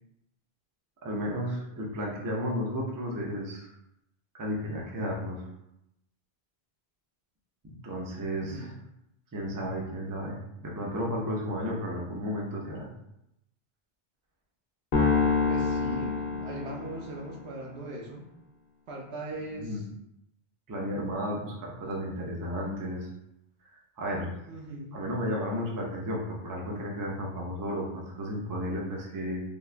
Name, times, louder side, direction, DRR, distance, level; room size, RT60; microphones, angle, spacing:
voice 1, 1.0-3.7 4.3-5.4 7.8-8.7 9.3-12.9 19.6-19.8 20.7-23.1 24.0-24.3 24.9-29.4, equal, 30° right, -2 dB, 0.4 m, -33 dB
voice 2, 8.4-8.7 15.5-18.3 18.9-19.9 24.5-25.0, right 2 dB, 90° right, -1 dB, 1.0 m, -39 dB
sound 1, 14.9-17.3, left 4 dB, 55° left, 0.9 m, -26 dB
3.5 x 2.3 x 2.4 m, 0.82 s
omnidirectional pair, 1.1 m